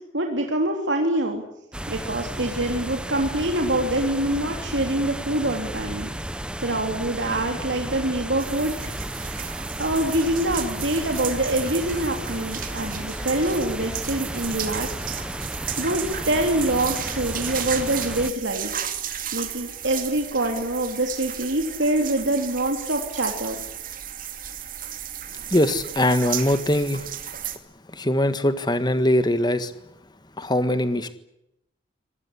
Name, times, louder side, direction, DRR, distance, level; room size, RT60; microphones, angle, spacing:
voice 1, 0.1-1.4 1.9-9.0 9.8-15.3 15.8-18.7 19.3-23.6, right 1 dB, 80° right, 3 dB, 3.3 m, -25 dB
sound 1, 1.7-18.3, right 1 dB, 5° right, 1.2 m, -33 dB
sound 2, 8.4-27.6, right 10 dB, 45° right, 2.6 m, -34 dB
voice 2, 25.5-27.1 27.9-29.7 30.4-31.1, left 1 dB, 25° left, 11 dB, 1.6 m, -22 dB
25.5 x 19.0 x 10.0 m, 0.81 s
head